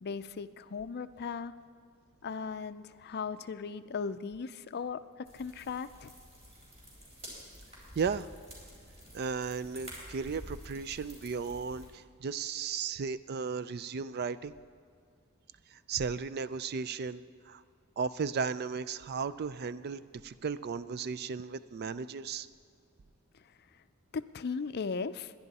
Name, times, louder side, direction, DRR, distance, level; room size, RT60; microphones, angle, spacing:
voice 1, 0.0-1.5 2.2-5.0 5.3-6.1 24.1-25.3, left 5 dB, 50° left, 13 dB, 0.4 m, -37 dB
sound 1, 5.2-11.9, equal, 30° right, 4.5 m, -49 dB
voice 2, 8.0-8.3 9.1-14.5 15.7-17.6 18.0-22.5, right 5 dB, 45° right, 15 dB, 0.4 m, -35 dB
21.5 x 10.5 x 4.1 m, 2.1 s
head